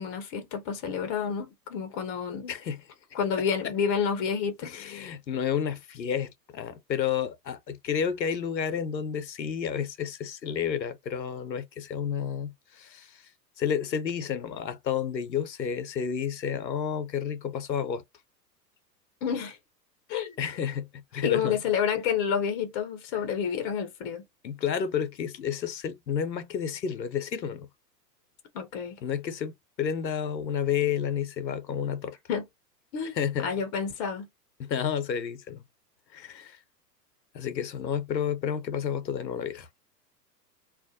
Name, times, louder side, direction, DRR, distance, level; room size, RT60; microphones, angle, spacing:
voice 1, 0.0-2.5 3.1-4.7 19.2-19.6 20.1-20.4 21.2-24.2 28.5-29.0 32.3-32.4 32.9-34.3, left 7 dB, 20° left, 0.4 m, -29 dB
voice 2, 2.5-2.8 3.1-3.2 3.6-3.7 4.6-13.2 13.6-18.0 20.4-21.6 24.4-27.7 29.0-32.2 33.1-33.5 34.6-35.6 36.1-36.6 37.3-39.7, left 8 dB, 90° left, 0.6 m, -31 dB
2.3 x 2.1 x 2.6 m
figure-of-eight pair, 100°, 50 cm